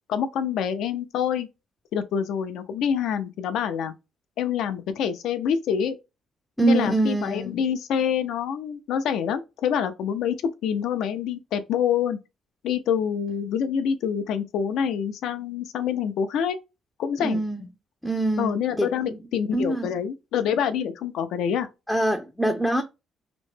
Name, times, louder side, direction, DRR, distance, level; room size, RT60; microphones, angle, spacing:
voice 1, 0.1-1.5 1.9-3.9 4.4-6.0 6.6-10.3 10.6-12.2 12.6-16.6 17.0-17.4 18.4-21.7, left 8 dB, 80° left, 0.5 m, -26 dB
voice 2, 6.6-7.6 17.2-17.7 18.0-19.2 19.5-19.9 21.9-22.8, right 2 dB, 5° left, 0.5 m, -24 dB
3.0 x 2.1 x 3.2 m
cardioid pair, 90°, 0 cm